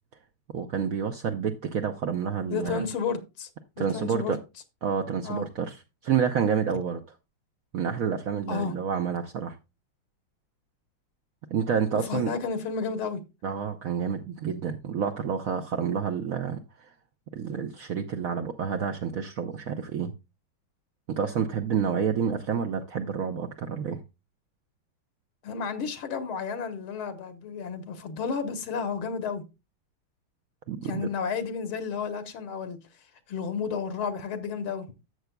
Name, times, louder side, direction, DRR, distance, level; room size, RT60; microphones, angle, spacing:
voice 1, 0.5-2.9 3.8-4.4 4.8-7.0 7.7-9.6 11.5-12.3 13.4-16.9 17.3-20.1 21.1-24.0 30.7-31.1, right 7 dB, 80° right, 0.7 m, -29 dB
voice 2, 2.5-3.5 3.8-4.4 5.2-5.4 8.5-8.7 12.1-13.2 25.4-29.4 30.8-32.8 33.3-34.9, left 6 dB, 85° left, 2.0 m, -32 dB
12.5 x 7.8 x 2.2 m
omnidirectional pair, 2.3 m